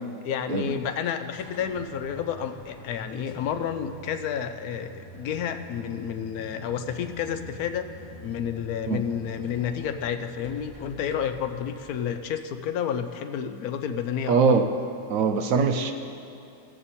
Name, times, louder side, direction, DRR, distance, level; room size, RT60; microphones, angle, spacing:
voice 1, 0.2-7.9 8.2-14.4, left 8 dB, 70° left, 8 dB, 1.0 m, -30 dB
sound 1, 1.0-12.7, equal, 40° left, 0.4 m, -46 dB
voice 2, 14.3-14.7 15.1-15.9, right 5 dB, 65° right, 6 dB, 1.0 m, -22 dB
18.0 x 7.7 x 4.2 m, 2.6 s
omnidirectional pair, 1.7 m